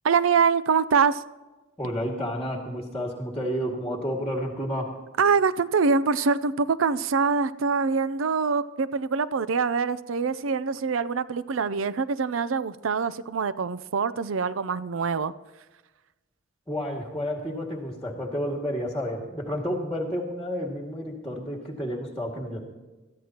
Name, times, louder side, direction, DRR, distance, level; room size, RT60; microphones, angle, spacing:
voice 1, 0.0-1.2 5.2-15.3, right 5 dB, 85° right, 15 dB, 0.5 m, -24 dB
voice 2, 1.8-4.9 16.7-22.7, equal, 5° left, 0 dB, 2.1 m, -30 dB
21.5 x 14.5 x 2.9 m, 1.2 s
head